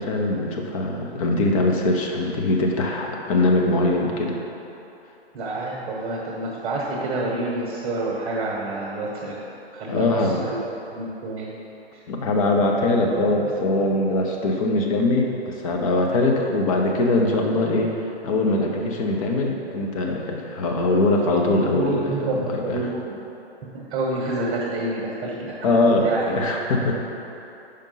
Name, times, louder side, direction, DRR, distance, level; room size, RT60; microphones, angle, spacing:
voice 1, 0.0-4.4 9.9-10.5 12.1-17.9 18.2-22.9 25.6-27.0, left 2 dB, 30° left, 0 dB, 0.8 m, -22 dB
voice 2, 5.3-9.4 9.7-10.6 10.9-11.5 21.7-23.1 23.7-26.3, right 2 dB, 20° right, -4 dB, 1.1 m, -28 dB
5.3 x 5.2 x 5.4 m, 3.0 s
figure-of-eight pair, 125°, 32 cm